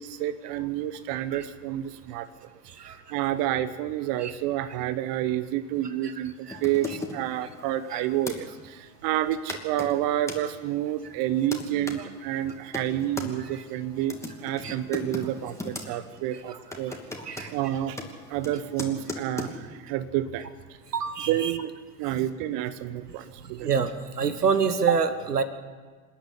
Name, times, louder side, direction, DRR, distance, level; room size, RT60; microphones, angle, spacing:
voice 1, 0.0-2.3 3.1-8.5 9.0-14.1 14.4-16.9 17.5-18.0 18.3-19.5 19.9-20.5 21.3-21.7 22.0-23.2 23.5-23.7, right 12 dB, 45° right, 14 dB, 1.0 m, -29 dB
sound 1, 6.5-8.4 9.1-9.2 9.5-10.4 11.1-12.0 12.5-13.3 14.0-15.9 16.2-16.4 16.7-19.5, left 2 dB, 5° left, 2.8 m, -38 dB
voice 2, 20.9-21.5 23.6-23.9 24.2-25.4, right 6 dB, 80° right, 11 dB, 1.4 m, -25 dB
27.0 x 10.5 x 9.8 m, 1.5 s
figure-of-eight pair, 75°, 46 cm